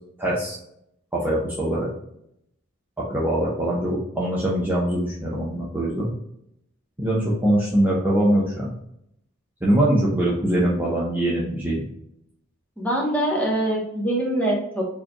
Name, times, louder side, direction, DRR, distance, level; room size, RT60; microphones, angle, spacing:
voice 1, 0.2-0.6 1.1-1.9 3.1-6.1 7.0-8.7 9.6-11.8, right 1 dB, 10° right, -6 dB, 0.7 m, -22 dB
voice 2, 12.8-14.8, right 1 dB, 10° left, -2 dB, 1.1 m, -23 dB
4.7 x 2.9 x 2.3 m, 0.76 s
head